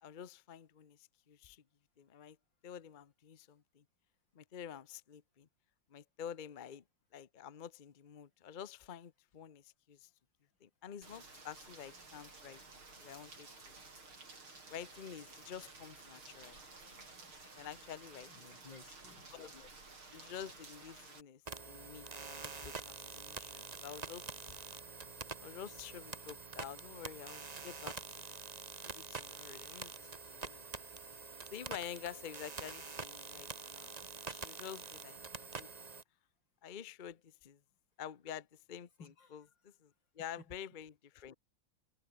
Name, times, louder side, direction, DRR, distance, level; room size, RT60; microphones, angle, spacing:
voice 1, 0.0-1.6 2.0-2.4 2.6-3.8 4.3-5.5 5.9-6.8 7.1-10.1 10.6-12.6 13.0-13.5 14.7-17.0 17.6-18.3 19.3-19.7 20.1-24.2 25.4-28.4 28.8-30.6 31.5-33.9 34.3-35.2 35.5-35.7 36.6-37.6 38.0-41.3, left 9 dB, 75° left, 0.4 m, -49 dB
Rain, 11.0-21.2, right 3 dB, 75° right, 6.5 m, -54 dB
voice 2, 18.3-19.3 29.6-29.8 39.0-39.5, left 5 dB, 55° left, 3.8 m, -57 dB
sound 1, 21.5-36.0, right 4 dB, 30° right, 0.8 m, -46 dB
omnidirectional pair, 2.4 m